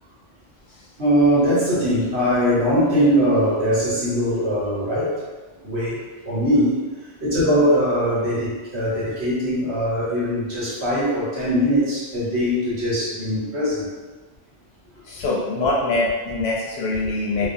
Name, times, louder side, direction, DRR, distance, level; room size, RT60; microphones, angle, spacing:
voice 1, 1.0-5.2 5.6-6.0 6.2-13.9 17.4-17.5, equal, 65° right, -9 dB, 1.3 m, -21 dB
voice 2, 15.0-17.5, left 2 dB, 65° left, -4 dB, 0.8 m, -23 dB
2.4 x 2.4 x 2.5 m, 1.3 s
omnidirectional pair, 1.2 m